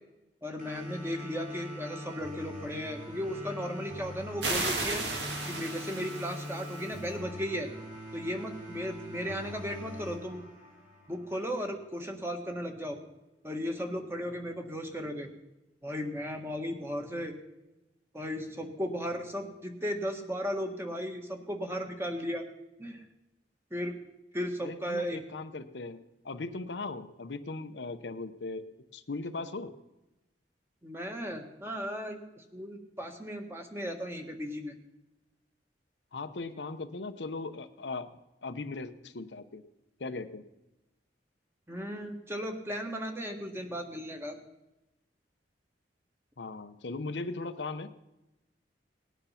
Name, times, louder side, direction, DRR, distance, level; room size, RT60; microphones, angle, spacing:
voice 1, 0.4-5.1 5.5-7.7 8.1-10.4 11.1-13.0 13.4-15.3 15.8-17.3 18.1-22.4 22.8-23.0 23.7-24.0 24.3-25.2 30.8-34.7 41.7-44.4, equal, 15° right, 4 dB, 1.6 m, -36 dB
sound 1, 0.6-11.6, left 1 dB, 45° right, 6.4 m, -43 dB
sound 2, 4.4-7.0, right 2 dB, 70° right, 2.5 m, -34 dB
voice 2, 24.6-28.7 28.9-29.7 36.1-39.6 40.0-40.4 46.4-48.1, left 3 dB, 75° left, 9 dB, 0.8 m, -38 dB
19.0 x 9.3 x 5.8 m, 0.96 s
head